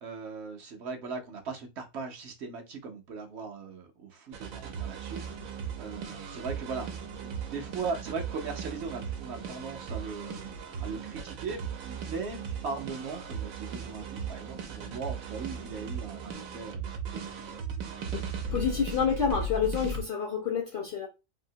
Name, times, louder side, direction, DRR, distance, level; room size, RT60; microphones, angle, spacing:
voice 1, 0.0-6.9 7.5-10.5 10.8-17.4, right 4 dB, 65° right, 0.8 m, -39 dB
sound 1, 4.3-20.0, right 4 dB, 85° right, 1.1 m, -37 dB
voice 2, 18.5-21.1, left 6 dB, 60° left, 0.6 m, -28 dB
2.8 x 2.7 x 2.6 m
omnidirectional pair, 1.4 m